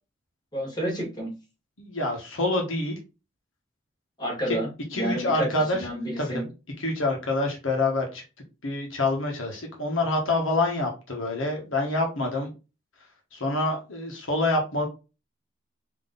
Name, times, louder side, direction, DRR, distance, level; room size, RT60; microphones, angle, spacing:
voice 1, 0.5-1.3 4.2-6.5, right 1 dB, 20° left, -3 dB, 1.9 m, -30 dB
voice 2, 1.8-3.0 4.5-4.6 4.9-5.9 6.2-6.4 6.8-8.2 8.6-12.5 13.3-14.9, left 2 dB, 75° left, 0 dB, 1.3 m, -26 dB
3.9 x 3.1 x 3.8 m, 0.30 s
head